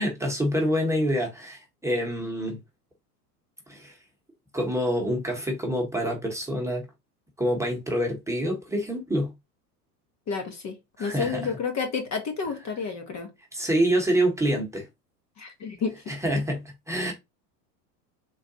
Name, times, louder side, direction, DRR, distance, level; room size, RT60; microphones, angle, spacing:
voice 1, 0.0-2.6 3.7-3.9 4.5-6.8 7.4-9.3 11.0-11.5 13.5-14.9 16.1-17.1, equal, 5° right, 1.2 m, -26 dB
voice 2, 10.3-13.3 15.4-16.0, left 5 dB, 35° left, 1.1 m, -31 dB
3.9 x 2.5 x 2.7 m
hypercardioid pair, 95°, 48 cm